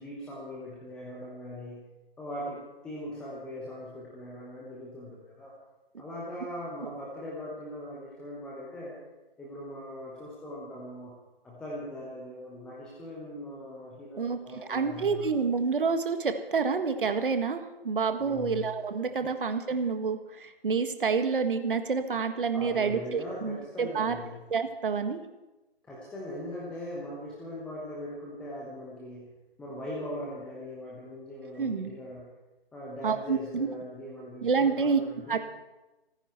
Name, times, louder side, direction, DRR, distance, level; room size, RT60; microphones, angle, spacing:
voice 1, 0.0-1.8 2.2-5.5 6.0-9.0 9.4-11.2 11.4-15.3 18.2-18.8 19.2-19.3 19.7-19.8 22.5-24.5 25.8-32.3 32.7-35.4, left 1 dB, 5° left, -5 dB, 1.0 m, -40 dB
voice 2, 14.2-24.2 24.5-25.2 31.6-31.9 33.0-33.7 34.4-35.0 35.3-35.4, right 5 dB, 55° right, 8 dB, 1.6 m, -28 dB
29.0 x 9.9 x 4.5 m, 1.1 s
figure-of-eight pair, 155°, 31 cm